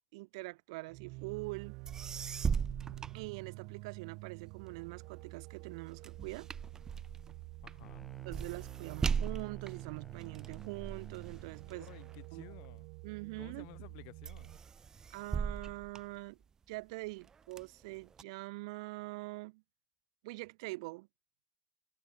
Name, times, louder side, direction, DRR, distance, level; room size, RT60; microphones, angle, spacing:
voice 1, 0.1-1.8 3.1-6.5 8.2-11.9 12.3-12.6 13.0-13.7 15.1-16.4 16.7-19.6 20.2-21.1, right 24 dB, 85° right, 1.5 m, -44 dB
sound 1, 0.9-14.6, right 27 dB, 65° right, 1.2 m, -48 dB
sound 2, 1.6-1.7 1.9-4.0 4.4-13.1 13.6-14.0 14.3-16.7 17.2-18.2, right 6 dB, 20° right, 0.5 m, -39 dB
voice 2, 7.6-8.1 11.7-12.9 13.4-14.6, left 40 dB or more, 70° left, 3.1 m, -54 dB
sound 3, 7.8-11.8, left 1 dB, 5° left, 3.4 m, -59 dB
cardioid pair, 150°, 3 cm